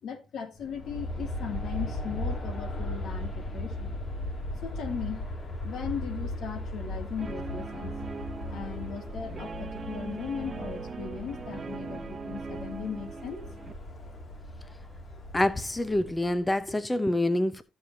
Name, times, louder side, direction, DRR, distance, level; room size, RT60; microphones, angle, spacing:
voice 1, 0.0-3.9 4.6-5.2 5.6-7.9 8.5-13.5, left 6 dB, 70° left, 2.6 m, -38 dB
Aircraft, 0.6-16.7, left 1 dB, 45° left, 2.5 m, -37 dB
Guitar, 7.2-13.7, right 4 dB, 35° right, 0.8 m, -40 dB
voice 2, 15.3-17.6, left 1 dB, 15° left, 0.7 m, -26 dB
14.0 x 6.9 x 2.8 m
cardioid pair, 90°, 0 cm